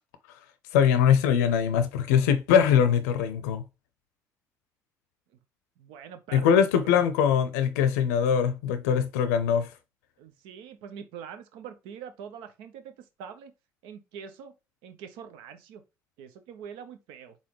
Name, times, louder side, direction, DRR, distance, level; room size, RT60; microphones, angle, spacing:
voice 1, 0.7-3.6 6.3-9.7, left 8 dB, 85° left, 0.5 m, -22 dB
voice 2, 5.8-7.0 10.2-13.5 13.8-14.5 14.8-15.8 16.2-17.4, right 7 dB, 75° right, 0.8 m, -44 dB
4.2 x 3.6 x 3.0 m
hypercardioid pair, 55°, 9 cm